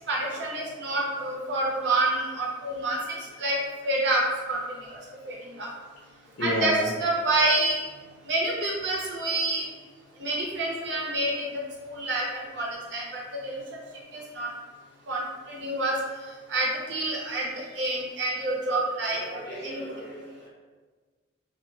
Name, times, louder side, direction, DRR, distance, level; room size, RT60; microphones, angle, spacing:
voice 1, 0.1-3.0 3.4-3.6 3.8-4.2 4.5-4.6 4.9-5.0 5.3-5.7 6.4-7.8 8.2-9.6 10.2-11.5 11.9-13.6 14.1-14.5 15.1-16.0 16.5-17.4 17.7-19.2 19.6-19.8, right 2 dB, 65° right, -3 dB, 0.7 m, -27 dB
voice 2, 6.4-6.9 19.1-20.5, left 1 dB, 65° left, -7 dB, 0.6 m, -32 dB
2.7 x 2.0 x 2.8 m, 1.4 s
head